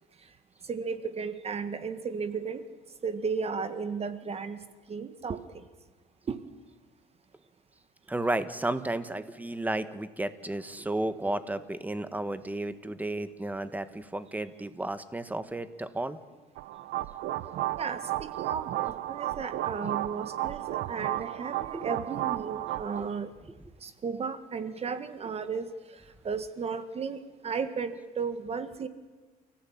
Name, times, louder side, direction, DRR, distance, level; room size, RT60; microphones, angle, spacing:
voice 1, 0.7-2.6 3.0-4.6 4.9-5.6 6.3-6.4 17.8-23.3 23.8-25.7 26.2-28.9, right 5 dB, 35° right, 11 dB, 1.6 m, -34 dB
voice 2, 8.1-16.2 21.7-21.8, right 1 dB, 10° right, 12 dB, 1.6 m, -33 dB
sound 1, 16.6-23.0, right 15 dB, 80° right, 1.0 m, -33 dB
30.0 x 16.0 x 8.8 m, 1.3 s
cardioid pair, 110°, 17 cm